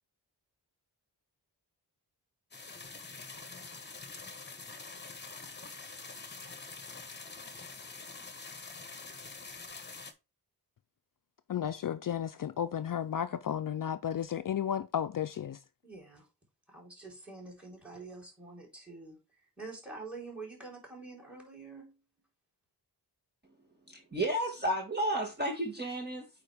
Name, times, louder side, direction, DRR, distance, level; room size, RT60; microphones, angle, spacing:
sound 1, 2.5-10.1, left 4 dB, 25° left, 1.2 m, -46 dB
voice 1, 11.5-15.6, left 9 dB, 55° left, 0.5 m, -33 dB
voice 2, 15.8-16.3 16.7-19.2 19.6-22.0, right 3 dB, 5° right, 4.0 m, -46 dB
voice 3, 23.9-26.3, right 1 dB, 25° right, 1.7 m, -32 dB
8.6 x 4.7 x 3.5 m
wide cardioid pair, 100°, 40 cm